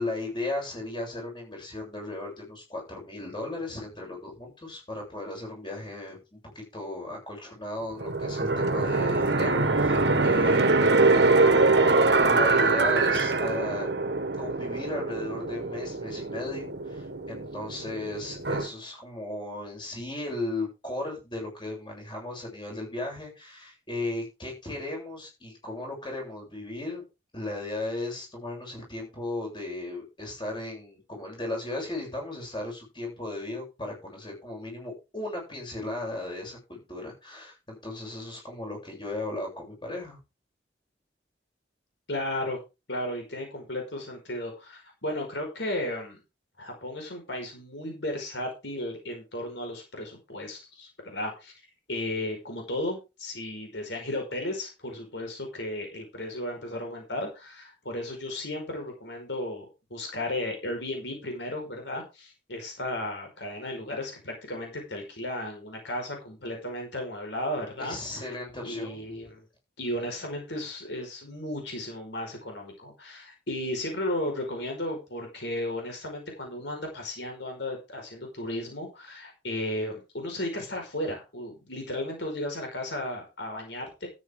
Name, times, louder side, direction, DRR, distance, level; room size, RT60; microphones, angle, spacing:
voice 1, 0.0-11.8 12.1-13.9 14.4-27.0 27.3-40.2 67.8-69.1, left 2 dB, 25° left, 0 dB, 7.9 m, -36 dB
sound 1, 8.0-18.7, right 3 dB, 65° right, 1.4 m, -24 dB
voice 2, 42.1-42.6 42.9-46.2 46.6-51.5 51.9-68.0 68.2-68.4 68.6-69.4 69.8-84.1, left 1 dB, 75° left, 2 dB, 5.1 m, -34 dB
13.0 x 10.0 x 3.8 m, 0.28 s
head